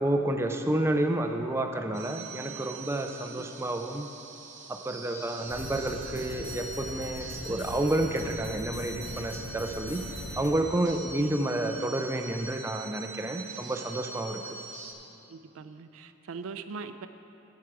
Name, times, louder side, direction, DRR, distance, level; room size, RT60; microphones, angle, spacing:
voice 1, 0.0-4.1 4.7-10.0 10.4-14.4, right 1 dB, 10° right, 5 dB, 0.4 m, -30 dB
sound 1, 1.9-14.9, right 3 dB, 35° right, 0.8 m, -44 dB
sound 2, 5.5-10.5, left 1 dB, 60° left, 0.9 m, -41 dB
voice 2, 15.3-17.1, right 5 dB, 75° right, 10 dB, 0.4 m, -41 dB
13.0 x 4.7 x 4.8 m, 2.8 s
head